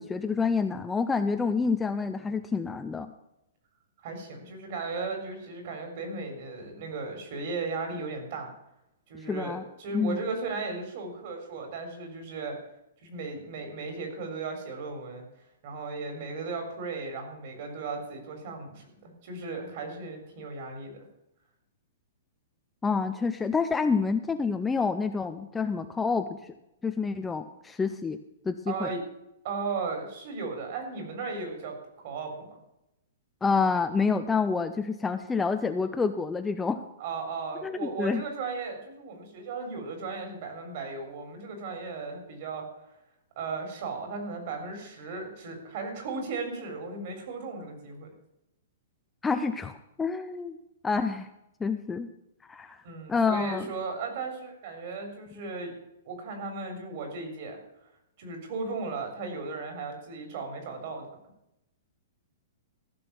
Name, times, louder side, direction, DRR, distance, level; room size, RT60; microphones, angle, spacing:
voice 1, 0.0-3.1 9.3-9.6 9.9-10.2 22.8-26.3 26.8-28.2 28.5-28.9 33.4-36.8 37.6-38.2 49.2-50.6 50.8-51.3 51.6-52.1 52.5-52.8 53.1-53.7, left 5 dB, 10° left, 8 dB, 0.4 m, -28 dB
voice 2, 4.0-8.5 9.1-12.6 13.0-15.2 15.6-21.1 28.7-29.0 29.4-32.6 37.0-42.7 43.4-48.1 52.8-55.7 56.1-57.6 58.2-61.1, right 4 dB, 45° right, 4 dB, 3.8 m, -36 dB
14.5 x 6.2 x 7.1 m, 0.86 s
hypercardioid pair, 170°, 0 cm